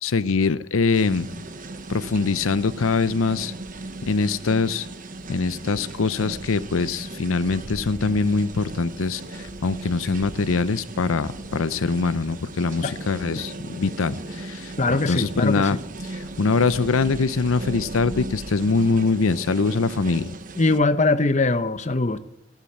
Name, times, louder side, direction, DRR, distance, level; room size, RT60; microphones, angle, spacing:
voice 1, 0.0-1.3 1.9-3.5 4.1-4.9 5.3-15.8 16.0-20.3, left 4 dB, 85° left, 0.6 m, -23 dB
sound 1, 0.9-20.8, right 2 dB, 40° right, 1.0 m, -37 dB
voice 2, 14.8-15.7 20.6-22.2, left 3 dB, 35° left, 0.9 m, -21 dB
15.0 x 11.5 x 8.6 m
head